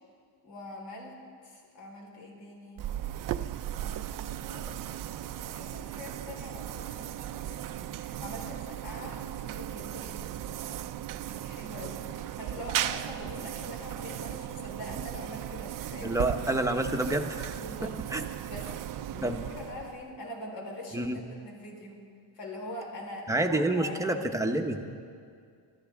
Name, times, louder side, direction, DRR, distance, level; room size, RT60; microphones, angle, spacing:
voice 1, 0.4-2.9 3.8-4.8 5.2-10.9 11.3-16.2 17.6-18.0 18.5-22.0 22.4-24.1, left 1 dB, 70° left, -1 dB, 4.3 m, -44 dB
sound 1, 2.8-20.2, right 12 dB, 45° right, 0.5 m, -37 dB
voice 2, 16.0-17.6 18.1-18.2 19.2-19.4 20.9-21.2 23.3-24.9, right 1 dB, 5° right, 4 dB, 0.9 m, -28 dB
25.0 x 13.0 x 3.6 m, 2.3 s
cardioid pair, 125°, 45 cm